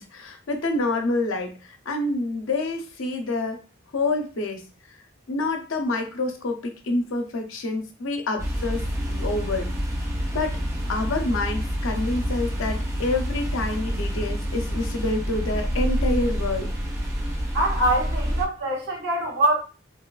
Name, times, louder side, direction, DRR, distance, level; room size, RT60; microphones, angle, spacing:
voice 1, 0.0-3.6 3.9-4.6 4.9-5.0 5.3-9.7 10.3-10.6 10.9-16.7, left 2 dB, 80° left, 0.5 m, -27 dB
boat inside, 8.4-18.5, equal, 15° right, 0.4 m, -27 dB
voice 2, 17.5-19.6, right 1 dB, 50° right, 1.0 m, -23 dB
2.9 x 2.2 x 2.3 m
head